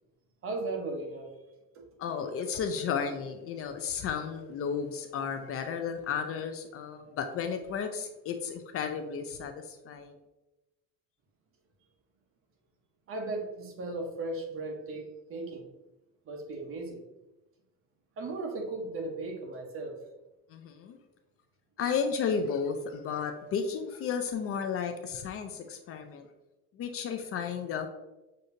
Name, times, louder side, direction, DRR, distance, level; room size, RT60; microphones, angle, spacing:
voice 1, 0.4-1.3 1.7-1.8 13.1-15.7 16.2-17.0 18.2-20.0, right 2 dB, 40° right, 2 dB, 0.9 m, -36 dB
voice 2, 2.0-10.2 20.5-21.0 21.8-26.3 26.7-27.9, left 6 dB, 45° left, 6 dB, 0.4 m, -33 dB
6.4 x 2.7 x 2.6 m, 1.0 s
cardioid pair, 140°, 33 cm